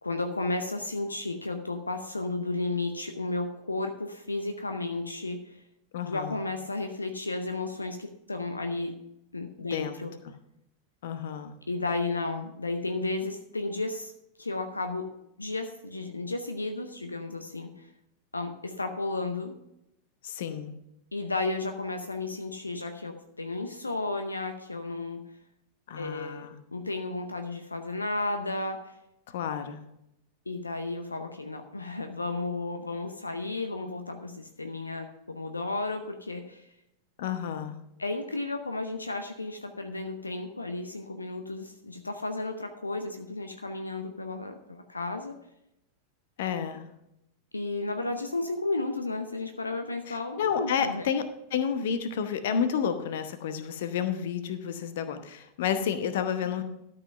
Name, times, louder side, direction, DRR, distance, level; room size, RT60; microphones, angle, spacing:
voice 1, 0.0-5.6 6.1-9.0 9.3-10.1 11.7-14.1 14.4-15.1 15.4-17.9 18.3-19.5 21.1-25.2 26.0-29.0 30.5-36.7 38.0-45.4 47.5-51.1 56.4-56.6, left 2 dB, 80° left, 6 dB, 0.7 m, -33 dB
voice 2, 5.9-6.4 9.6-10.0 11.0-11.5 20.2-20.7 25.9-26.6 29.3-29.8 37.2-37.8 46.4-46.8 50.1-56.6, left 7 dB, 55° left, 10 dB, 0.9 m, -30 dB
12.5 x 5.7 x 5.4 m, 0.83 s
figure-of-eight pair, 90°, 0 cm